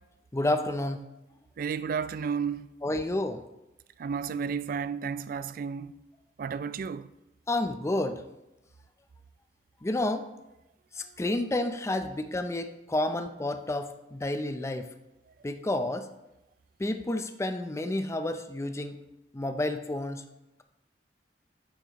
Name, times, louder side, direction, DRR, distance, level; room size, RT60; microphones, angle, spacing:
voice 1, 0.3-1.0 2.8-3.4 7.5-8.2 9.8-10.3 10.9-14.9 15.4-16.1 16.8-19.0 19.3-20.2, left 1 dB, 15° left, 0.5 m, -30 dB
voice 2, 1.6-2.7 4.0-5.9 6.4-7.1, right 6 dB, 50° right, 0.3 m, -32 dB
9.3 x 7.1 x 3.0 m
head